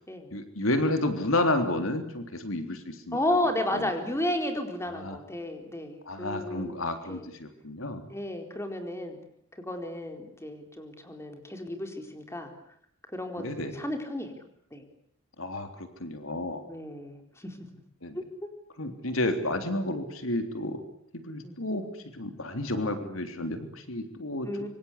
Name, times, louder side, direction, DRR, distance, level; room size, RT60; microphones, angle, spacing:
voice 1, 0.3-3.2 3.7-3.9 4.9-5.2 6.1-8.0 13.4-13.8 15.4-16.6 18.0-18.2 18.8-20.8 21.1-21.9 22.1-24.7, left 1 dB, 85° left, 7 dB, 3.4 m, -31 dB
voice 2, 3.1-6.8 7.0-7.3 8.1-9.2 9.5-12.5 13.1-14.3 14.7-14.9 16.7-17.6 18.1-18.5 21.4-21.6 24.4-24.7, left 1 dB, 15° left, 5 dB, 4.1 m, -33 dB
26.0 x 25.0 x 8.4 m, 0.68 s
head